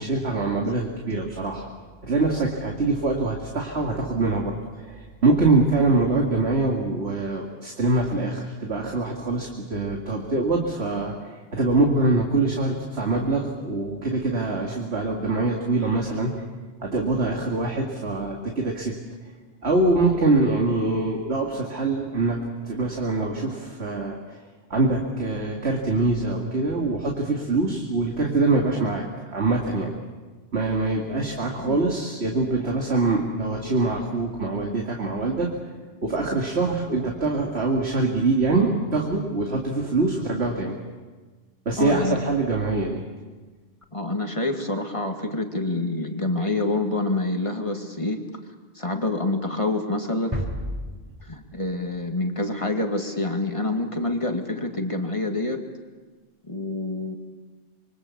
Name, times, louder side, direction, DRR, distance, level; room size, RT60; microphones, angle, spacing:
voice 1, 0.0-1.7 2.0-11.1 11.5-16.3 16.8-18.9 19.6-22.4 22.6-24.2 24.7-29.9 30.5-35.5 36.0-40.7 41.7-43.0, right 2 dB, 65° right, -1 dB, 2.6 m, -24 dB
voice 2, 41.8-42.2 43.9-48.2 48.8-50.4 51.2-55.6 56.5-57.2, left 2 dB, 25° left, 3 dB, 2.2 m, -27 dB
sound 1, 50.3-52.2, equal, 25° right, 3.6 m, -32 dB
26.5 x 24.0 x 7.2 m, 1.4 s
omnidirectional pair, 1.2 m